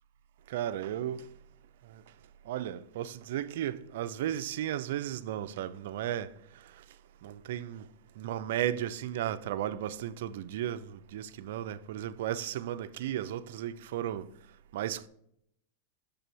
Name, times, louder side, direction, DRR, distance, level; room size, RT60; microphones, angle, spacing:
voice 1, 0.5-1.2 2.5-6.3 7.2-7.9 8.2-14.3 14.7-15.1, right 11 dB, 70° right, 0.4 m, -34 dB
6.9 x 3.4 x 6.0 m
supercardioid pair, 140°, 0 cm